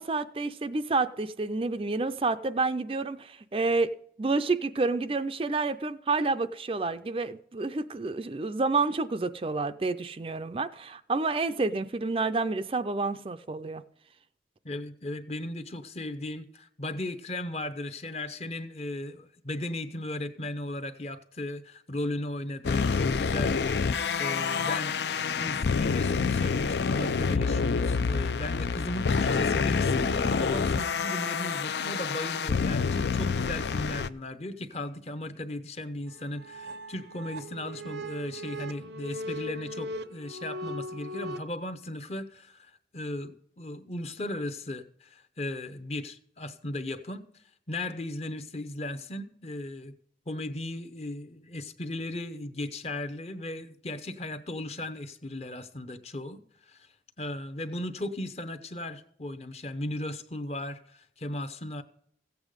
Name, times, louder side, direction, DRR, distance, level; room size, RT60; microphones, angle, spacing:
voice 1, 0.0-3.9 4.2-13.8, right 3 dB, 30° right, 0.4 m, -29 dB
voice 2, 14.6-24.9 25.4-47.2 47.7-49.9 50.3-56.8 57.2-61.8, left 1 dB, 35° left, 0.8 m, -36 dB
sound 1, 22.6-34.1, left 5 dB, 75° left, 0.5 m, -27 dB
sound 2, 36.1-41.4, equal, 85° right, 0.7 m, -39 dB
15.5 x 8.2 x 5.1 m
head